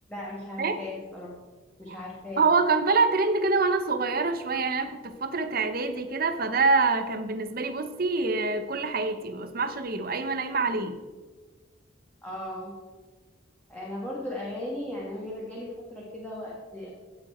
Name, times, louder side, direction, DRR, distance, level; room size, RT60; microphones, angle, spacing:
voice 1, 0.1-1.3 1.8-2.4 12.2-12.7 13.7-16.9, left 1 dB, 5° left, -5 dB, 1.7 m, -37 dB
voice 2, 2.4-10.9, right 4 dB, 50° right, 9 dB, 0.8 m, -25 dB
16.5 x 7.0 x 4.3 m, 1.4 s
head